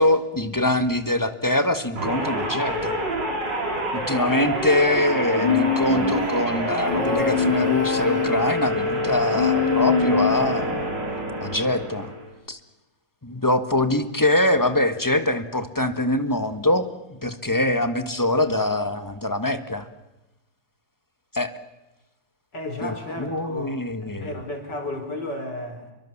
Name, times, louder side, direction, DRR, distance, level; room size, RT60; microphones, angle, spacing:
voice 1, 0.0-3.0 3.9-10.9 11.4-12.1 12.5-12.6 13.2-19.9 21.3-21.5 22.8-22.9 23.2-24.3, left 1 dB, 10° left, 9 dB, 1.5 m, -23 dB
sound 1, 2.0-12.3, equal, 75° right, 5.7 m, -27 dB
Human voice, 5.4-6.3 6.9-8.5 9.3-10.6, left 6 dB, 85° left, 4.8 m, -24 dB
voice 2, 22.5-25.9, left 1 dB, 70° left, 4 dB, 5.8 m, -33 dB
29.0 x 23.0 x 7.3 m, 1.0 s
omnidirectional pair, 2.0 m